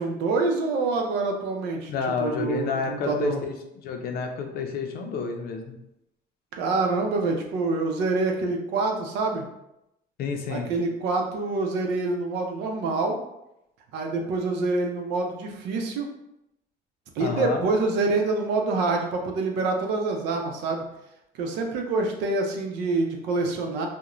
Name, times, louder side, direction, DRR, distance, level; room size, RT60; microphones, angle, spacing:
voice 1, 0.0-1.9 2.2-3.4 6.6-9.4 10.5-13.2 13.9-16.1 17.2-20.8 21.4-23.9, right 3 dB, 90° right, 2 dB, 0.5 m, -26 dB
voice 2, 1.9-3.6 3.8-5.7 10.2-10.7 17.2-17.7, left 5 dB, 65° left, 3 dB, 0.5 m, -29 dB
2.4 x 2.1 x 2.9 m, 0.85 s
cardioid pair, 110°, 17 cm